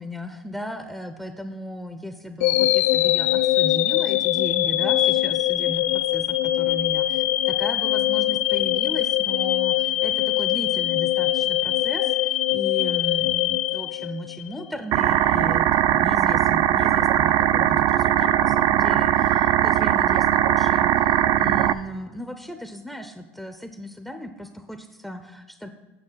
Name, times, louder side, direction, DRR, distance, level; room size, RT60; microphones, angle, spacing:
voice 1, 0.0-25.7, equal, ahead, 7 dB, 0.5 m, -36 dB
sound 1, 2.4-14.5, left 15 dB, 80° left, 0.4 m, -22 dB
sound 2, 14.9-21.7, right 12 dB, 55° right, 0.4 m, -20 dB
9.0 x 5.8 x 5.6 m, 1.2 s
supercardioid pair, 115°, 8 cm